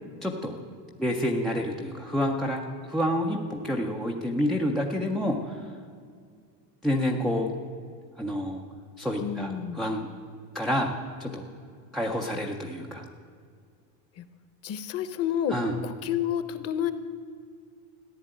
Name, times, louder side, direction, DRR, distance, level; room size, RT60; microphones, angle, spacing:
voice 1, 0.2-0.6 1.0-5.6 6.8-7.5 8.2-8.6 9.0-10.1 10.5-10.9 11.2-11.5 11.9-13.0 15.5-15.8, equal, ahead, 0 dB, 0.3 m, -28 dB
voice 2, 9.2-9.8 14.2-14.3 14.6-15.6 15.8-16.9, left 9 dB, 30° left, 12 dB, 0.9 m, -29 dB
15.0 x 10.0 x 8.8 m, 2.2 s
cardioid pair, 165°, 46 cm